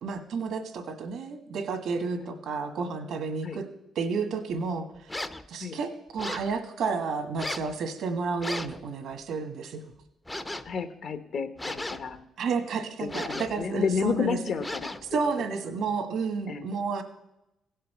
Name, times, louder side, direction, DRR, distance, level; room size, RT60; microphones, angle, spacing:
voice 1, 0.0-3.6 3.9-4.9 5.5-9.9 12.4-14.6 15.1-17.0, right 5 dB, 70° right, 7 dB, 1.6 m, -31 dB
sound 1, 5.1-5.5 6.2-6.5 7.4-7.7 8.4-8.8 10.3-10.7 11.6-12.2 13.1-13.6 14.6-15.1, left 1 dB, 15° left, 0.7 m, -36 dB
voice 2, 10.6-12.2 13.0-14.9 15.7-15.8 16.5-16.7, left 5 dB, 60° left, 10 dB, 1.1 m, -31 dB
16.5 x 5.6 x 6.8 m, 0.87 s
cardioid pair, 90°, 0 cm